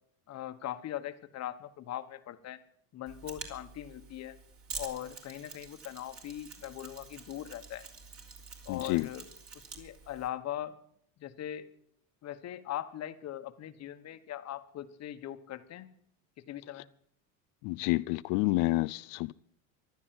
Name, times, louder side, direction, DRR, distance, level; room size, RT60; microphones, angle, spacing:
voice 1, 0.3-2.6 2.9-4.4 4.7-7.9 8.6-9.2 9.8-10.7 11.2-11.7 12.2-15.9 16.5-16.9, left 12 dB, 40° left, 1.3 m, -40 dB
Mechanisms, 3.1-10.3, right 5 dB, 35° right, 3.5 m, -47 dB
voice 2, 8.7-9.1 17.6-19.3, left 21 dB, 60° left, 0.5 m, -29 dB
15.0 x 12.0 x 7.7 m
supercardioid pair, 115°, 40 cm